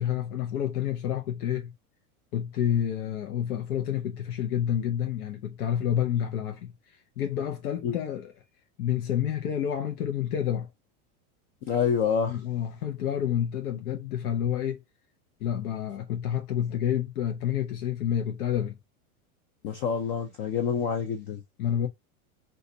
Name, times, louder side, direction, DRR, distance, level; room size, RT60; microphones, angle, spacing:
voice 1, 0.0-1.7 2.3-8.3 8.8-10.7 12.3-14.8 15.4-18.8 20.7-20.9 21.6-21.9, left 10 dB, 85° left, 0.8 m, -29 dB
voice 2, 11.6-12.4 19.6-21.4, left 7 dB, 35° left, 0.4 m, -27 dB
3.8 x 2.5 x 2.6 m
supercardioid pair, 135°, 44 cm